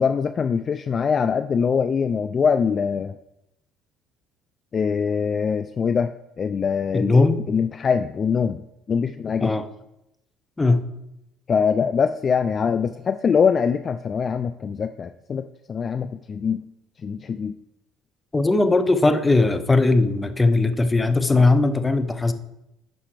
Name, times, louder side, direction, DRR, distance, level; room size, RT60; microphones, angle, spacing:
voice 1, 0.0-3.2 4.7-9.5 11.5-16.6 17.0-17.5, left 6 dB, 40° left, 11 dB, 0.3 m, -23 dB
voice 2, 6.9-7.4 9.4-9.7 10.6-10.8 18.3-22.3, left 3 dB, 20° left, 10 dB, 0.7 m, -19 dB
10.5 x 5.5 x 3.3 m, 0.88 s
hypercardioid pair, 70°, 0 cm